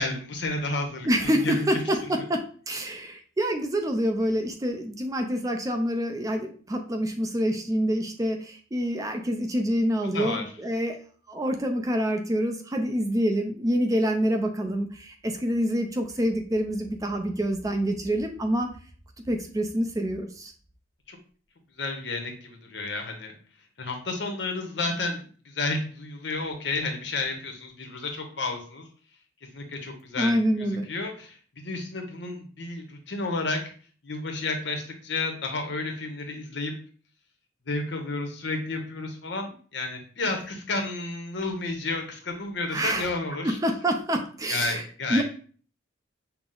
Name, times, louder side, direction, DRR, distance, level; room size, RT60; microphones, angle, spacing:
voice 1, 0.0-1.7 10.1-10.4 21.1-21.2 21.8-23.3 23.8-28.9 29.5-30.4 30.9-33.6 34.0-36.7 37.7-43.6 44.5-45.2, left 3 dB, 65° left, 4 dB, 0.9 m, -31 dB
voice 2, 1.0-11.0 11.3-18.7 19.3-20.5 30.2-30.9 42.7-43.1 43.4-44.8 45.1-45.2, equal, 20° right, 5 dB, 0.4 m, -27 dB
5.8 x 2.0 x 3.8 m, 0.43 s
head